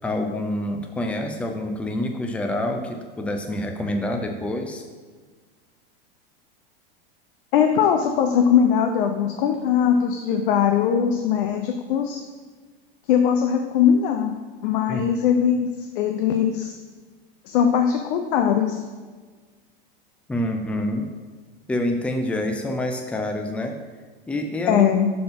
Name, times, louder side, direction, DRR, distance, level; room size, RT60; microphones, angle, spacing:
voice 1, 0.0-4.8 14.9-15.1 20.3-21.1 21.7-23.7 24.3-24.9, left 1 dB, 5° left, 4 dB, 0.5 m, -27 dB
voice 2, 7.5-12.2 13.1-14.4 14.6-16.8 17.5-18.8 24.6-25.1, left 8 dB, 65° left, 5 dB, 0.6 m, -20 dB
5.5 x 4.4 x 5.2 m, 1.4 s
supercardioid pair, 125°, 29 cm